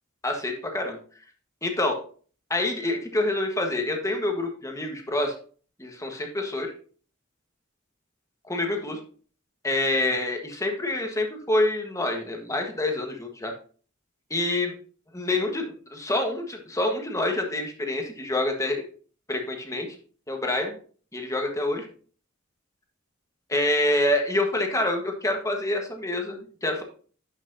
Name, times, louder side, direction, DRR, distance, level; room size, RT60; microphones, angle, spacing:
voice 1, 0.2-1.0 1.6-2.0 2.5-5.3 5.8-6.7 8.4-9.0 9.6-13.5 14.3-14.7 15.1-18.8 19.3-19.9 20.3-20.8 21.1-21.9 23.5-26.8, left 1 dB, 15° left, 3 dB, 1.4 m, -27 dB
11.5 x 6.0 x 2.8 m, 0.42 s
head